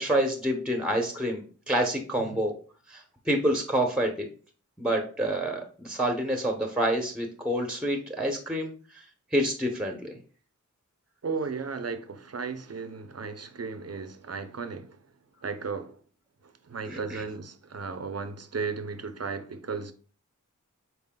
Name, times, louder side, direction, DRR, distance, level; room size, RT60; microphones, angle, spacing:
voice 1, 0.0-2.5 2.9-4.3 4.8-9.0 9.3-10.1 16.9-17.2, right 1 dB, 5° right, 0.8 m, -28 dB
voice 2, 11.2-15.0 15.4-16.0 16.4-19.9, right 5 dB, 50° right, 0.6 m, -35 dB
5.5 x 4.1 x 2.2 m
wide cardioid pair, 60°, 31 cm